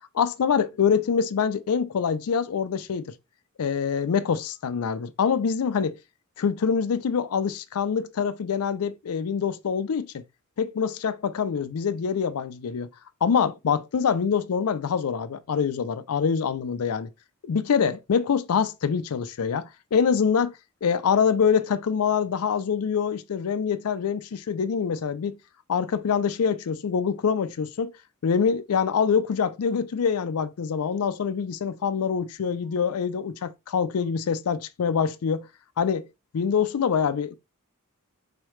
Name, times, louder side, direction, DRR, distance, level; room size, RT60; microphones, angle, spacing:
voice 1, 0.1-3.1 3.6-6.0 6.4-10.2 10.6-12.9 13.2-17.1 17.4-20.5 20.8-25.4 25.7-27.9 28.2-35.5 35.8-36.1 36.3-37.3, left 6 dB, 80° left, 0.4 m, -25 dB
4.6 x 3.2 x 3.1 m
head